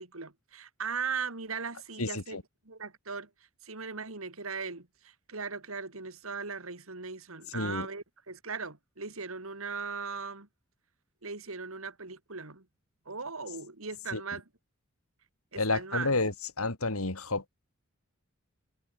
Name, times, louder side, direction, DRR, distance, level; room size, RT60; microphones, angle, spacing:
voice 1, 0.0-2.4 2.7-3.3 3.6-10.5 11.2-12.7 13.1-14.4 15.5-16.1, right 5 dB, 70° right, 2.5 m, -38 dB
voice 2, 2.0-2.4 7.5-7.9 14.1-14.2 15.5-17.4, left 3 dB, 85° left, 3.1 m, -30 dB
head